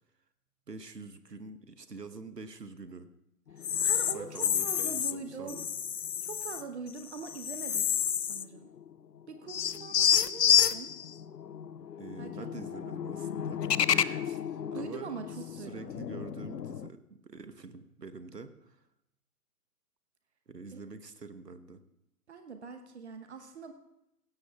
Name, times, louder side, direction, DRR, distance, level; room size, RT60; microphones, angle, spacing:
voice 1, 0.7-3.1 4.1-5.7 12.0-14.4 14.7-15.1 15.5-18.8 20.5-21.8, right 3 dB, 85° right, 11 dB, 1.1 m, -46 dB
voice 2, 3.5-5.6 6.2-7.9 8.2-8.7 9.3-10.9 12.2-12.5 13.9-14.2 14.7-15.9 20.7-20.8 22.3-23.7, right 5 dB, 45° right, 7 dB, 1.0 m, -43 dB
sound 1, 3.6-5.1 5.5-6.6 7.0-8.6 8.9-9.0 9.5-16.9, left 8 dB, 85° left, 0.6 m, -30 dB
16.5 x 16.0 x 2.3 m, 0.85 s
figure-of-eight pair, 130°, 47 cm